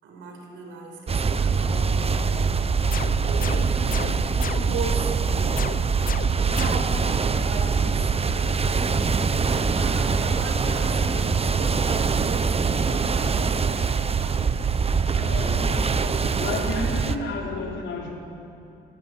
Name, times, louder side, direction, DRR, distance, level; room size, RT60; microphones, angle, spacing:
voice 1, 0.0-3.7 4.4-5.5 6.3-8.7 9.5-14.4 15.8-17.8, right 3 dB, 90° right, 2 dB, 5.5 m, -38 dB
sound 1, 1.1-17.2, right 5 dB, 30° right, 1.0 m, -23 dB
sound 2, 2.9-5.0 5.6-7.1, left 7 dB, 45° left, 0.8 m, -36 dB
voice 2, 15.1-16.0 16.4-18.2, left 3 dB, 70° left, 0 dB, 4.2 m, -32 dB
19.0 x 18.5 x 9.5 m, 2.7 s
cardioid pair, 90°, 20 cm